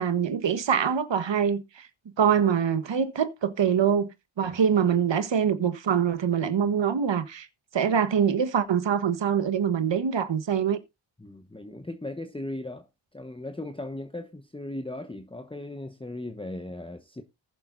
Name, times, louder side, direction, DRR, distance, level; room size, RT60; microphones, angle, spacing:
voice 1, 0.0-1.9 2.2-4.1 4.4-7.5 7.7-10.8, right 7 dB, 65° right, 1.4 m, -24 dB
voice 2, 11.2-12.9 13.1-17.2, left 1 dB, 10° left, 1.1 m, -37 dB
19.0 x 7.2 x 2.6 m
cardioid pair, 45°, 48 cm